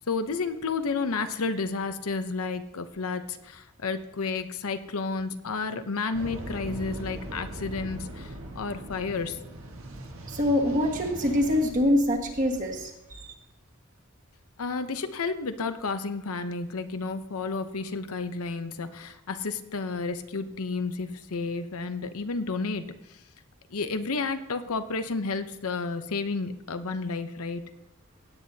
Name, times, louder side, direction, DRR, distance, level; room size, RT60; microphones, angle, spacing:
voice 1, 0.1-9.4 14.6-23.2 23.7-27.6, left 4 dB, 80° left, 9 dB, 0.8 m, -31 dB
sound 1, 6.1-12.9, right 1 dB, 70° right, 1.5 m, -40 dB
voice 2, 10.3-13.3, left 1 dB, 35° right, 0 dB, 1.6 m, -25 dB
17.0 x 9.1 x 2.8 m, 0.90 s
head